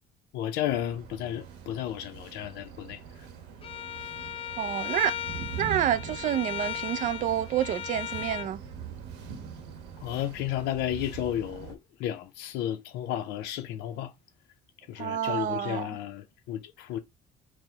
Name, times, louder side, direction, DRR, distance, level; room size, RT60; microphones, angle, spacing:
voice 1, 0.3-3.0 10.0-14.1 14.9-17.0, left 11 dB, 85° left, 0.5 m, -33 dB
sound 1, 0.6-11.7, right 7 dB, 90° right, 0.9 m, -43 dB
Bowed string instrument, 3.6-8.5, left 10 dB, 35° left, 0.4 m, -37 dB
voice 2, 4.6-5.1 5.6-8.6 15.0-16.0, right 11 dB, 50° right, 0.4 m, -28 dB
4.5 x 2.0 x 3.9 m
cardioid pair, 110°, 17 cm